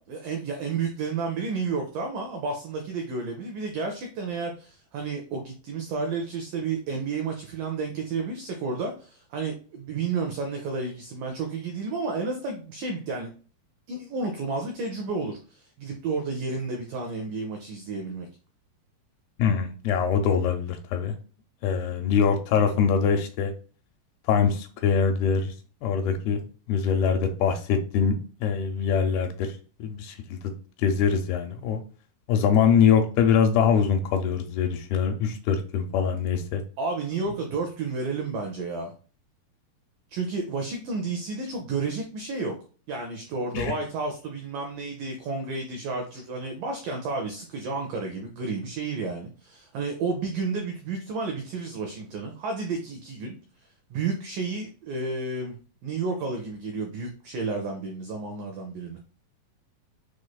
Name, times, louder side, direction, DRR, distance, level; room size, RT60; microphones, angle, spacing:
voice 1, 0.0-13.3 13.9-18.3 36.8-38.9 40.1-42.5 42.9-53.4 53.9-55.6 55.8-59.0, right 4 dB, 85° right, 3 dB, 1.8 m, -31 dB
voice 2, 19.4-21.2 21.6-23.5 24.3-25.5 25.8-26.4 26.7-29.5 29.8-30.5 30.8-31.8 32.3-36.6 43.5-43.7, left 7 dB, 80° left, 5 dB, 2.4 m, -23 dB
6.3 x 3.1 x 2.3 m, 0.38 s
omnidirectional pair, 4.6 m